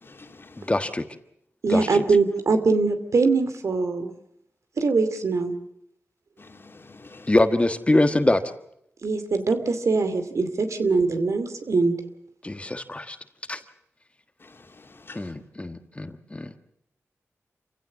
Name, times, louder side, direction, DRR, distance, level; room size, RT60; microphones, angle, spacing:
voice 1, 0.0-0.7 6.4-7.3 14.4-15.3, left 3 dB, 45° left, 2.7 m, -48 dB
voice 2, 0.6-1.0 1.7-2.0 7.3-8.4 12.4-13.2 13.5-13.6 15.1-16.6, left 2 dB, 25° left, 1.4 m, -23 dB
voice 3, 1.6-4.1 4.8-5.5 9.0-12.0, right 4 dB, 75° right, 2.5 m, -22 dB
27.5 x 16.0 x 7.3 m
wide cardioid pair, 75°, 5 cm